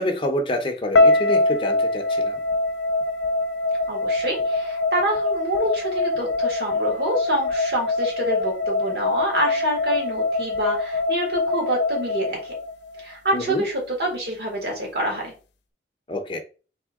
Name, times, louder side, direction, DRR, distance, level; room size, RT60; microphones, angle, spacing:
voice 1, 0.0-2.4 13.3-13.6 16.1-16.4, left 1 dB, 30° left, 0.7 m, -27 dB
sound 1, 0.9-13.1, left 2 dB, 80° left, 0.6 m, -23 dB
voice 2, 3.9-12.5 13.0-15.3, right 1 dB, 65° right, 1.8 m, -27 dB
3.7 x 3.5 x 3.6 m
head